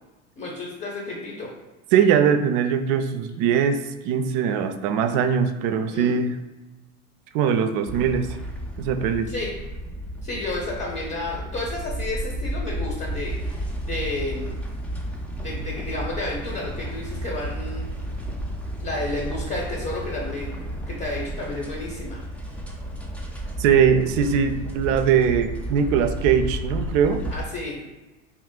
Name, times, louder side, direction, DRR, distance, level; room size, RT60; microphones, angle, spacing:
voice 1, 0.4-1.5 5.9-6.2 9.3-9.5 10.2-14.5 15.4-17.8 18.8-20.5 20.9-22.2 27.3-27.8, left 2 dB, 30° left, -2 dB, 0.8 m, -31 dB
voice 2, 1.9-6.4 7.3-8.4 8.8-9.3 23.6-27.2, right 7 dB, 55° right, 9 dB, 0.4 m, -21 dB
sound 1, 7.9-27.4, right 1 dB, 5° left, 0.4 m, -32 dB
2.7 x 2.4 x 3.6 m, 1.1 s
hypercardioid pair, 85°, 36 cm